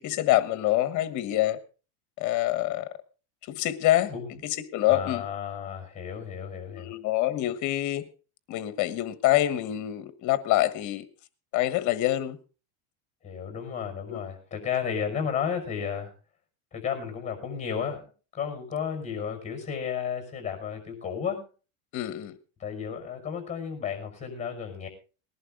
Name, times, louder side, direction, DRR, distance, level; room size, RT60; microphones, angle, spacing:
voice 1, 0.0-1.6 2.2-2.9 3.5-4.1 4.4-5.2 6.7-8.0 8.5-11.1 11.5-12.4 14.1-14.2 21.9-22.3, left 14 dB, 45° left, 1.3 m, -26 dB
voice 2, 4.9-6.9 13.2-16.1 16.7-18.0 18.3-21.4 22.6-24.9, left 7 dB, 15° left, 5.7 m, -33 dB
19.5 x 11.0 x 3.7 m
supercardioid pair, 150°, 43 cm